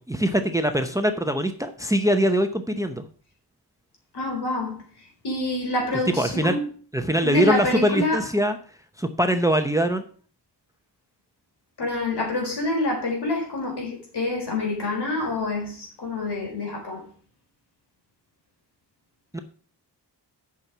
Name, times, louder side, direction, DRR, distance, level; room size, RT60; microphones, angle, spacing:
voice 1, 0.0-3.0 6.2-6.6 6.9-8.6 9.0-10.0 19.3-19.4, equal, 10° right, 0.7 m, -22 dB
voice 2, 4.1-4.8 5.2-6.6 7.2-8.3 11.8-17.0, left 2 dB, 70° left, 4.2 m, -27 dB
8.5 x 6.1 x 6.1 m
wide cardioid pair, 130°, 41 cm